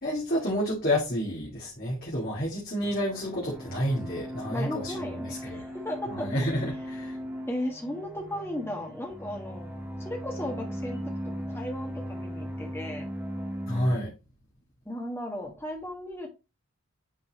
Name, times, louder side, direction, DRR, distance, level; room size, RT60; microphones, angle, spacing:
voice 1, 0.0-5.6 6.1-7.2 13.7-14.1, equal, 45° left, 1.8 m, -30 dB
sound 1, 2.8-14.0, equal, 10° right, 0.6 m, -38 dB
voice 2, 4.5-6.6 7.5-9.7 10.0-13.1 14.8-16.3, left 1 dB, 10° left, 1.5 m, -36 dB
8.8 x 4.1 x 2.9 m
head